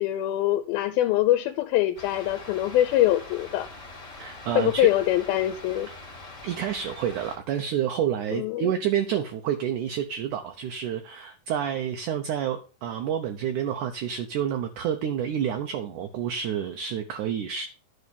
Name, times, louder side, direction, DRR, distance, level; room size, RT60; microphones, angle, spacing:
voice 1, 0.0-3.7 4.6-5.9 8.3-8.7, left 14 dB, 85° left, 2.5 m, -23 dB
sound 1, 2.0-7.4, left 2 dB, 25° left, 2.1 m, -43 dB
voice 2, 4.2-4.9 6.4-17.7, right 9 dB, 70° right, 2.0 m, -29 dB
11.0 x 4.0 x 6.9 m
omnidirectional pair, 4.3 m